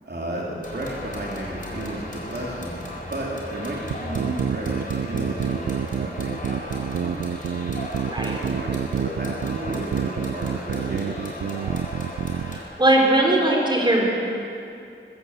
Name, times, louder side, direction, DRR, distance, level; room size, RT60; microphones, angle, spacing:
voice 1, 0.0-2.7 3.1-7.4 8.2-11.3 11.6-12.0, right 1 dB, 50° right, -3 dB, 3.3 m, -33 dB
sound 1, 0.6-12.6, left 1 dB, 40° left, 4.2 m, -35 dB
sound 2, 3.9-12.6, right 9 dB, 85° right, 0.4 m, -28 dB
voice 2, 8.1-8.4 12.5-14.1, right 1 dB, 20° right, -1 dB, 4.1 m, -20 dB
21.0 x 15.5 x 8.1 m, 2.6 s
wide cardioid pair, 95°, 21 cm